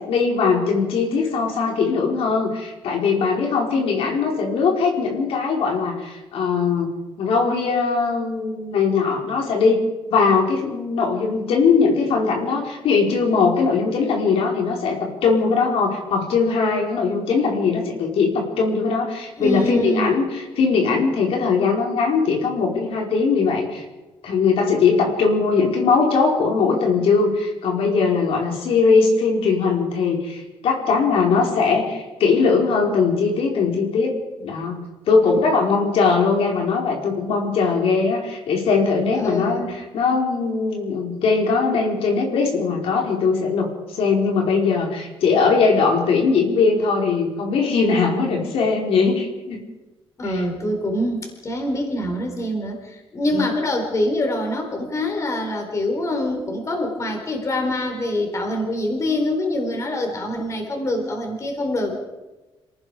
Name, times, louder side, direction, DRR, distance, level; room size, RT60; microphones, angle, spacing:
voice 1, 0.0-6.9 7.2-9.8 10.1-23.8 24.2-34.1 34.4-34.8 35.1-49.6 50.2-50.4 53.3-53.5, left 4 dB, 85° left, 1 dB, 4.7 m, -20 dB
voice 2, 19.4-20.1 35.2-35.3 39.1-39.8 50.2-61.9, left 1 dB, 30° left, 2 dB, 4.3 m, -25 dB
27.5 x 18.5 x 5.1 m, 1.1 s
cardioid pair, 155°, 9 cm